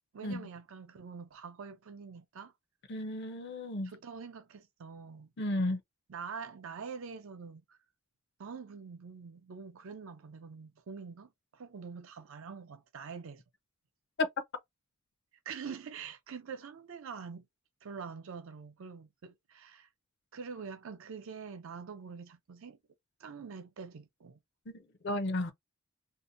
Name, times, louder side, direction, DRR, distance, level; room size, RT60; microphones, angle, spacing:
voice 1, 0.1-2.5 3.8-5.3 6.1-7.8 8.4-13.4 15.5-17.5 17.8-19.9 20.3-22.8 23.2-24.4, right 5 dB, 65° right, 0.5 m, -45 dB
voice 2, 2.9-3.9 5.4-5.8 25.0-25.5, left 1 dB, 50° left, 0.5 m, -33 dB
2.7 x 2.1 x 2.6 m
head